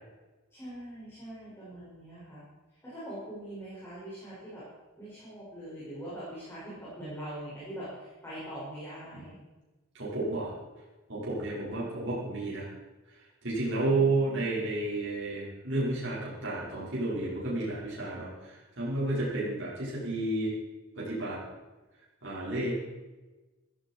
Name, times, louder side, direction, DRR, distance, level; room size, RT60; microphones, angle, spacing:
voice 1, 0.5-2.4 2.8-4.6 5.0-9.3 11.4-12.0, right 1 dB, 10° left, -11 dB, 6.5 m, -43 dB
voice 2, 9.9-10.5 11.1-12.7 13.4-20.5 21.0-21.4 22.2-22.7, right 2 dB, 55° right, -8 dB, 5.4 m, -31 dB
16.5 x 13.5 x 4.7 m, 1.2 s
head